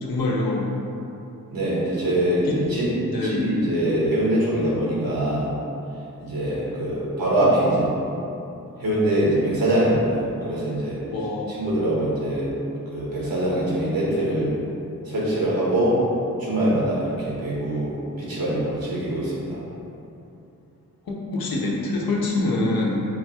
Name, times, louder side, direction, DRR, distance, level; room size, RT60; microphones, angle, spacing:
voice 1, 0.0-0.7 2.4-2.6 3.1-3.5 11.1-11.6 21.1-23.1, left 2 dB, 85° left, -3 dB, 0.8 m, -25 dB
voice 2, 1.5-2.9 3.2-5.5 6.2-7.9 8.8-11.0 11.5-12.5 12.9-14.5 15.0-16.0 16.4-19.6, right 1 dB, 80° right, -7 dB, 1.4 m, -23 dB
4.7 x 2.3 x 4.3 m, 2.9 s
cardioid pair, 70°, 35 cm